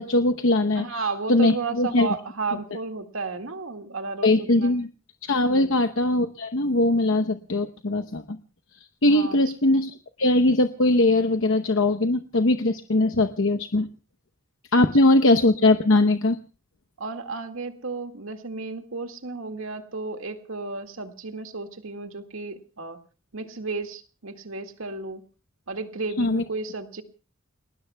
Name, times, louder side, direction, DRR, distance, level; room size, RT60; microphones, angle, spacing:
voice 1, 0.0-2.1 4.2-4.9 5.2-8.4 9.0-13.9 14.7-16.4 26.2-26.4, left 2 dB, 70° left, 6 dB, 0.9 m, -21 dB
voice 2, 0.8-4.7 5.5-5.7 9.0-9.4 14.8-15.1 17.0-23.0 23.3-25.2 25.7-27.0, right 3 dB, 80° right, 8 dB, 2.0 m, -33 dB
30.0 x 19.5 x 2.3 m, 0.36 s
head